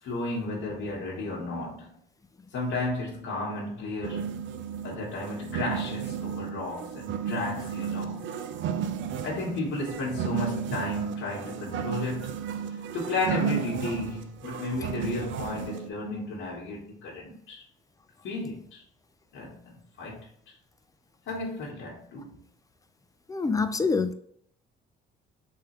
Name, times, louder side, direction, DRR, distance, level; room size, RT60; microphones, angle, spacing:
voice 1, 0.0-1.9 2.5-4.4 4.8-8.3 9.2-12.3 12.9-17.6 18.2-18.8 19.3-20.3 21.3-22.4, left 2 dB, 75° left, 1.1 m, -33 dB
sound 1, 4.0-15.9, right 8 dB, 70° right, 0.5 m, -33 dB
voice 2, 23.3-24.1, left 4 dB, 15° left, 0.5 m, -25 dB
3.7 x 3.2 x 3.0 m
cardioid pair, 90°, 20 cm